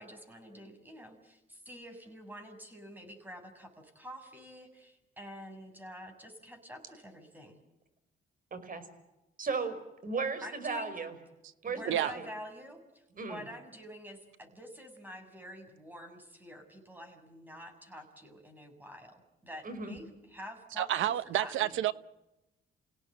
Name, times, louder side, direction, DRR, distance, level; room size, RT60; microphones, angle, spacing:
voice 1, 0.0-7.6 10.4-10.9 11.7-21.8, equal, 10° right, 6.7 m, -48 dB
voice 2, 8.5-8.8 9.4-9.8 10.0-11.1 11.6-12.3 13.1-13.4 19.6-19.9, right 4 dB, 45° right, 5.0 m, -35 dB
voice 3, 20.8-21.9, right 12 dB, 80° right, 1.0 m, -29 dB
28.5 x 17.5 x 9.1 m
cardioid pair, 90°, 20 cm